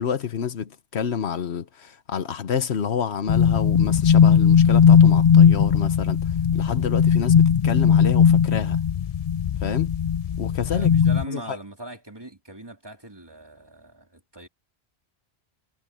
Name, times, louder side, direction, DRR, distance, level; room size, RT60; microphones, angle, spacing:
voice 1, 0.0-8.8 9.6-9.9 10.4-10.9 11.3-11.6, left 7 dB, 85° left, 1.2 m, -28 dB
sound 1, 3.3-11.3, left 7 dB, 60° left, 0.4 m, -18 dB
voice 2, 10.7-14.5, right 1 dB, 20° right, 3.3 m, -40 dB
omnidirectional pair, 1.1 m